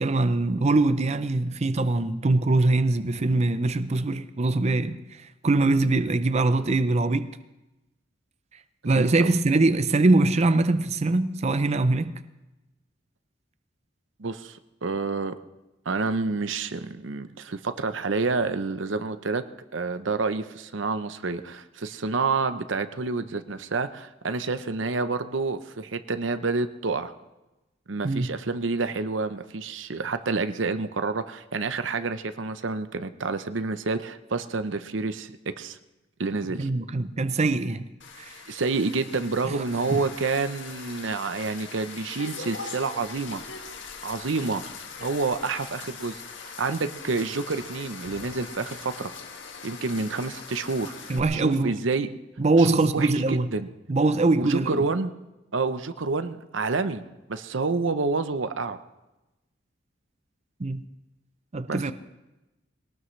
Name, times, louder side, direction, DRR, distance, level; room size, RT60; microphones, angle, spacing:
voice 1, 0.0-7.3 8.8-12.2 28.0-28.3 36.6-37.9 38.2-38.3 39.4-39.5 39.9-40.0 51.1-51.8 52.4-53.5 53.9-54.9 60.6-60.8 61.5-61.9, right 2 dB, 35° right, 0.5 m, -23 dB
voice 2, 14.2-15.4 15.9-19.4 19.7-27.1 27.9-35.8 36.2-36.7 38.5-43.4 44.0-44.6 45.0-49.1 49.6-50.9 51.3-52.1 52.6-53.7 54.4-55.1 55.5-57.0 57.3-58.8 61.7-61.8, right 4 dB, 90° right, 0.8 m, -28 dB
sound 1, 38.0-51.2, left 5 dB, 75° left, 1.5 m, -41 dB
21.0 x 18.5 x 3.2 m
head